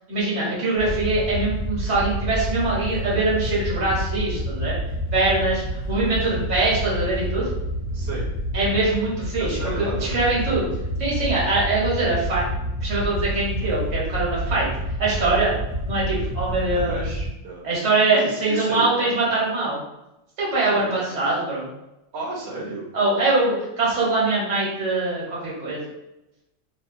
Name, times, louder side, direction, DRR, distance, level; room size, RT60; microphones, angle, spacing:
voice 1, 0.1-4.7 5.1-7.5 8.5-10.7 11.0-12.4 12.8-14.7 15.0-15.5 15.9-17.2 17.6-19.8 20.4-21.7 22.9-25.8, right 2 dB, 80° right, -6 dB, 1.3 m, -23 dB
Wind / Boat Water vehicle, 0.8-17.3, equal, 45° left, 0.8 m, -28 dB
voice 2, 7.9-8.3 9.4-10.6 16.7-17.1 17.4-17.6 18.1-19.3 20.7-21.2 22.1-22.9, right 3 dB, 65° right, -4 dB, 0.9 m, -33 dB
2.7 x 2.1 x 2.4 m, 0.91 s
omnidirectional pair, 1.3 m